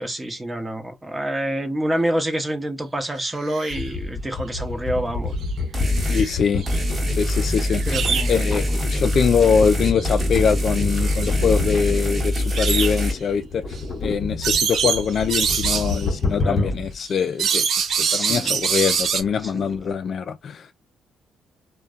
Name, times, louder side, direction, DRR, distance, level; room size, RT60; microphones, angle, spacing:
voice 1, 0.0-5.4 7.9-8.6 16.4-16.7 18.0-18.6 19.4-19.7, right 1 dB, 15° right, 0.8 m, -27 dB
sound 1, 3.2-3.9 5.4-5.5 5.9-6.8 7.5-8.5 9.9-10.1 11.0-11.3 12.4-13.1 13.8-13.9 14.4-16.1 17.1-19.2, right 6 dB, 65° right, 0.5 m, -24 dB
sound 2, 3.7-17.0 17.4-17.5 17.8-17.9 18.3-18.4 18.6-19.9, left 3 dB, 35° left, 0.8 m, -30 dB
sound 3, 5.7-6.3 6.7-13.1, left 1 dB, 30° right, 1.1 m, -24 dB
voice 2, 6.1-6.7 7.1-13.6 14.0-17.7 18.0-20.7, left 6 dB, 55° left, 0.3 m, -23 dB
2.6 x 2.2 x 2.4 m
cardioid pair, 90°, 0 cm